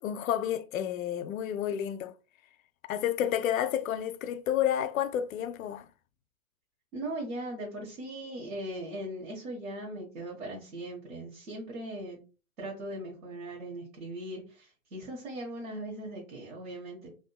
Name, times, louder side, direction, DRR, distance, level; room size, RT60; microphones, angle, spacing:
voice 1, 0.0-2.1 2.9-5.9, left 10 dB, 75° left, 0.5 m, -30 dB
voice 2, 6.9-12.2 12.6-17.1, right 1 dB, 85° right, 1.4 m, -39 dB
3.7 x 2.6 x 2.3 m
hypercardioid pair, 125°, 42 cm